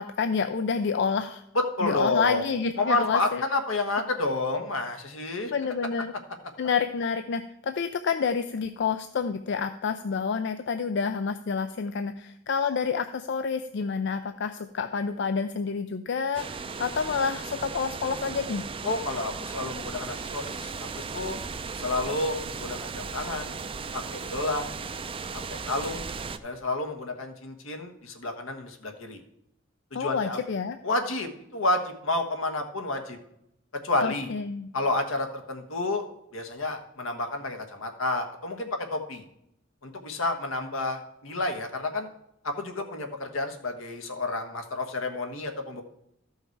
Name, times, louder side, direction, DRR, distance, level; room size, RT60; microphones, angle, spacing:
voice 1, 0.0-1.4 1.8-3.4 5.5-6.1 6.6-18.7 29.9-30.8 34.0-34.7, left 5 dB, 60° left, 9 dB, 0.4 m, -28 dB
voice 2, 1.5-2.5 2.8-5.5 18.8-20.7 21.1-21.4 21.8-23.5 24.1-24.7 25.5-26.1 26.4-29.2 29.9-30.4 30.8-33.2 33.8-34.3 34.7-36.1 36.3-39.2 39.8-42.1 42.4-45.8, left 2 dB, 80° left, 6 dB, 1.4 m, -30 dB
sound 1, 16.3-26.4, right 4 dB, 25° right, 0.4 m, -36 dB
13.5 x 5.6 x 4.6 m, 0.81 s
head